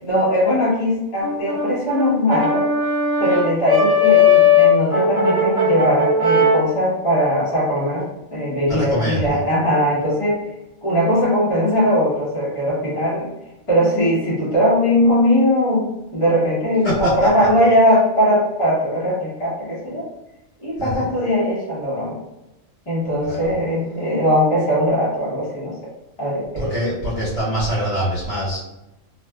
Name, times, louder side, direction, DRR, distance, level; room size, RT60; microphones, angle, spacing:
voice 1, 0.0-2.7 3.2-10.4 10.8-13.3 13.7-20.0 20.6-22.2 22.9-25.7 26.2-26.7, equal, 25° left, -9 dB, 1.0 m, -19 dB
Brass instrument, 1.2-6.7, left 4 dB, 35° right, 0.5 m, -17 dB
voice 2, 8.7-9.4 16.8-17.5 20.8-21.1 23.2-23.5 26.6-28.6, equal, 55° left, -9 dB, 1.4 m, -24 dB
2.5 x 2.4 x 2.3 m, 0.95 s
omnidirectional pair, 1.3 m